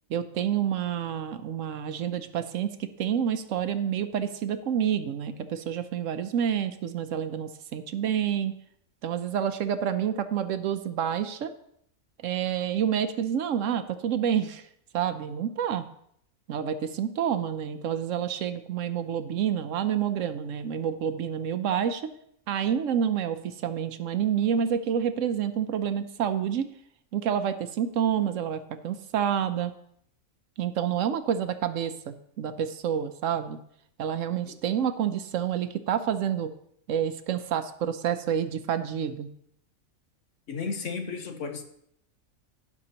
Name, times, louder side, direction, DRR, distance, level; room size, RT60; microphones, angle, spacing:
voice 1, 0.1-8.5 9.0-11.5 12.2-14.7 14.9-15.9 16.5-22.1 22.5-26.7 27.1-29.7 30.6-33.6 34.0-36.5 36.9-39.3, right 9 dB, 70° right, 10 dB, 1.0 m, -28 dB
voice 2, 40.5-41.6, left 5 dB, 60° left, 5 dB, 1.3 m, -33 dB
17.0 x 5.9 x 2.9 m, 0.70 s
omnidirectional pair, 1.5 m